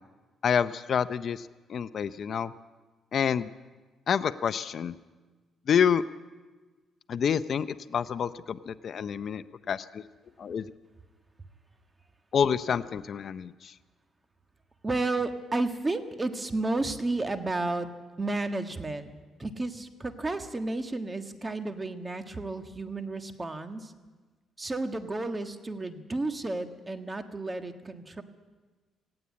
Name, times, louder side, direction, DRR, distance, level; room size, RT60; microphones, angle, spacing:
voice 1, 0.4-2.5 3.1-3.5 4.1-5.0 5.7-6.0 7.1-10.1 10.4-10.7 12.3-13.7, left 7 dB, 55° left, 14 dB, 0.6 m, -28 dB
voice 2, 14.8-17.9 18.2-19.1 19.4-23.9 24.6-28.2, right 2 dB, 20° right, 7 dB, 1.5 m, -32 dB
18.0 x 16.5 x 8.5 m, 1.3 s
cardioid pair, 90°, 0 cm